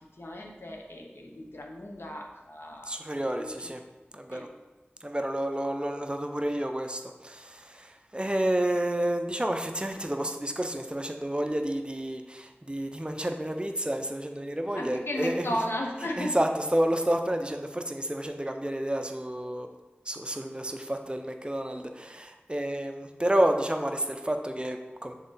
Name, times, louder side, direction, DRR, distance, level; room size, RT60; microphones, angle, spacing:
voice 1, 0.2-2.9 3.3-3.5 4.3-4.5 14.7-16.4, left 1 dB, 70° left, 0 dB, 0.9 m, -35 dB
voice 2, 2.9-3.8 4.1-4.5 5.0-15.6 16.2-19.7 20.1-25.1, right 1 dB, 25° right, 5 dB, 0.5 m, -30 dB
6.2 x 3.8 x 4.0 m, 1.1 s
wide cardioid pair, 40°, 4 cm